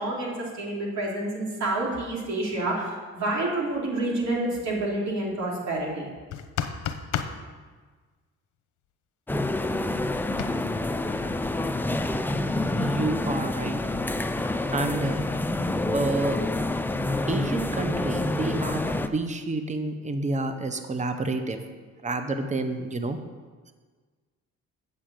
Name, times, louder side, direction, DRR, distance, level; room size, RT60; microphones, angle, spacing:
voice 1, 0.0-6.1, right 2 dB, 65° right, -3 dB, 2.9 m, -28 dB
sound 1, 6.3-7.4 10.4-10.5, left 9 dB, 80° left, 0.7 m, -29 dB
sound 2, 9.3-19.1, left 2 dB, 5° left, 0.4 m, -27 dB
voice 2, 12.8-13.8 14.7-15.2 15.9-16.4 17.3-21.6 22.0-23.2, right 2 dB, 25° right, 7 dB, 0.8 m, -29 dB
8.3 x 5.0 x 7.5 m, 1.4 s
cardioid pair, 90°, 30 cm